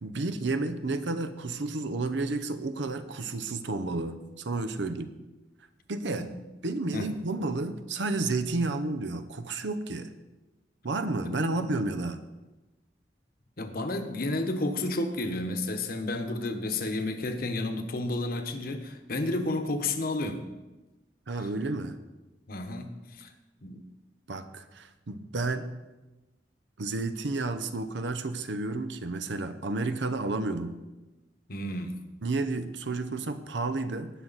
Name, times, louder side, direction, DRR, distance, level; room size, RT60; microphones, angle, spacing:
voice 1, 0.0-5.1 5.9-6.3 6.6-10.1 10.8-12.2 21.3-22.0 24.3-25.7 26.8-30.8 32.2-34.1, right 2 dB, 90° right, 10 dB, 0.8 m, -31 dB
voice 2, 13.6-20.4 22.5-23.3 23.6-23.8 31.5-32.0, left 2 dB, 55° left, 6 dB, 1.1 m, -31 dB
18.5 x 6.1 x 4.1 m, 1.1 s
head